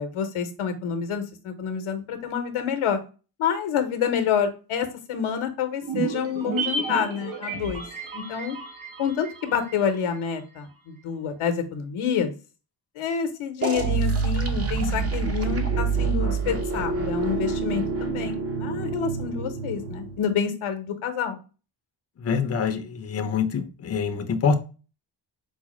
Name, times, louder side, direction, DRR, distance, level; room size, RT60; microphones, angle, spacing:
voice 1, 0.0-3.0 3.4-7.8 8.1-8.6 9.0-12.3 13.0-21.4, left 7 dB, 80° left, 8 dB, 0.8 m, -28 dB
sound 1, 5.8-10.3 10.6-10.7, right 5 dB, 65° right, 1.0 m, -32 dB
sound 2, 13.6-20.2, right 5 dB, 30° right, 0.7 m, -27 dB
voice 2, 22.2-24.6, left 5 dB, 30° left, 7 dB, 0.5 m, -25 dB
4.7 x 2.0 x 3.0 m, 0.33 s
cardioid pair, 75°, 49 cm